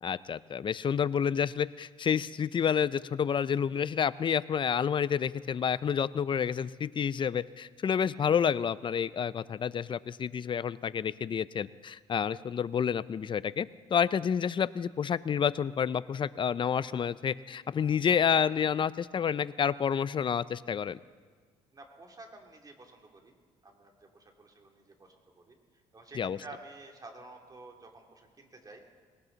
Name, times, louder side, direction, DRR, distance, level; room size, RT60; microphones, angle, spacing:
voice 1, 0.0-21.0 26.1-26.4, left 7 dB, 40° left, 17 dB, 0.5 m, -29 dB
voice 2, 21.7-23.3 23.6-25.6 25.9-28.9, right 2 dB, 30° right, 2 dB, 2.8 m, -51 dB
20.0 x 18.0 x 4.0 m, 1.5 s
supercardioid pair, 75°, 13 cm